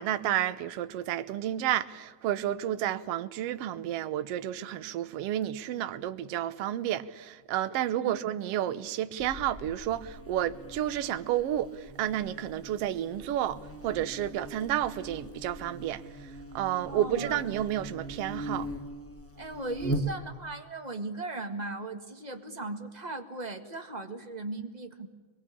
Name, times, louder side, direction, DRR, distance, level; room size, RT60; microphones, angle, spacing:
voice 1, 0.0-18.7, right 11 dB, 65° right, 1.8 m, -31 dB
Buzz, 9.2-20.6, right 1 dB, 15° left, 0.4 m, -40 dB
voice 2, 16.9-17.5 19.4-25.1, right 2 dB, 20° right, 1.4 m, -38 dB
23.5 x 22.5 x 8.5 m
omnidirectional pair, 3.4 m